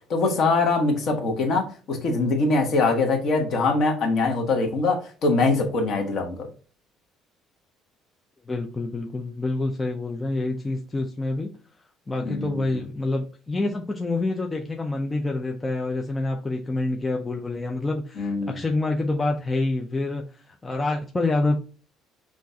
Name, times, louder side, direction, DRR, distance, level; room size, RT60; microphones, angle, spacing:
voice 1, 0.1-6.5 12.2-12.6 18.2-18.6, left 3 dB, 40° left, 2 dB, 1.2 m, -23 dB
voice 2, 8.5-11.5 12.1-21.6, left 2 dB, 10° left, 1 dB, 0.4 m, -27 dB
6.1 x 2.4 x 2.7 m, 0.37 s
cardioid pair, 170°, 0 cm